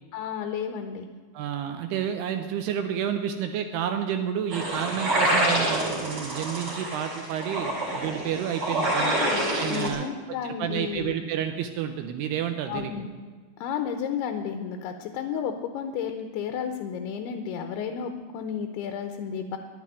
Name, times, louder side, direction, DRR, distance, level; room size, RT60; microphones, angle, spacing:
voice 1, 0.1-1.1 9.0-11.1 12.7-13.1 13.6-19.6, left 7 dB, 80° left, 6 dB, 2.5 m, -32 dB
voice 2, 1.3-9.2 9.5-10.1 10.6-12.9, right 9 dB, 80° right, 7 dB, 2.5 m, -30 dB
sound 1, 4.5-9.9, right 1 dB, 35° right, 3.3 m, -27 dB
11.0 x 9.6 x 9.7 m, 1.5 s
omnidirectional pair, 5.1 m